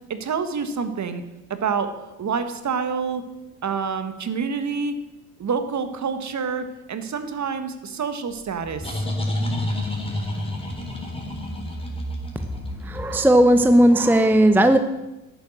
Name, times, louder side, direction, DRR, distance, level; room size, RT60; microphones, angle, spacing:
voice 1, 0.1-1.2 1.5-3.2 3.6-5.0 5.4-9.1, right 5 dB, 35° right, 10 dB, 1.6 m, -27 dB
sound 1, 8.3-13.9, left 1 dB, 10° left, 3.8 m, -29 dB
voice 2, 12.9-14.8, right 1 dB, 5° right, 9 dB, 0.8 m, -16 dB
11.0 x 9.4 x 6.3 m, 0.99 s
hypercardioid pair, 60°, 46 cm